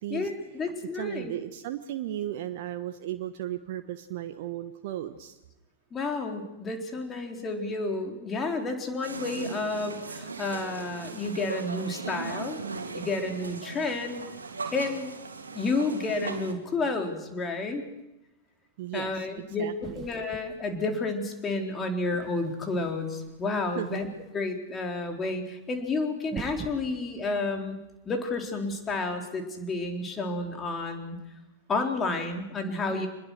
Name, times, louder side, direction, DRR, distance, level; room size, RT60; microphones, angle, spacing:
voice 1, 0.1-1.3 5.9-12.6 12.9-14.2 14.7-15.1 15.5-17.8 18.9-19.6 20.0-24.1 24.3-27.8 28.1-31.2 31.7-33.1, left 3 dB, 20° left, 3 dB, 4.1 m, -31 dB
voice 2, 0.9-5.4 18.8-20.0 23.7-24.0 32.9-33.1, right 12 dB, 50° right, 8 dB, 1.2 m, -35 dB
sound 1, 9.0-16.5, right 4 dB, 75° right, 2.7 m, -38 dB
sound 2, 19.8-21.1 21.8-24.3 25.7-25.8 26.2-28.4, right 6 dB, 25° right, 1.9 m, -44 dB
26.0 x 21.0 x 6.4 m, 0.98 s
figure-of-eight pair, 90°, 0 cm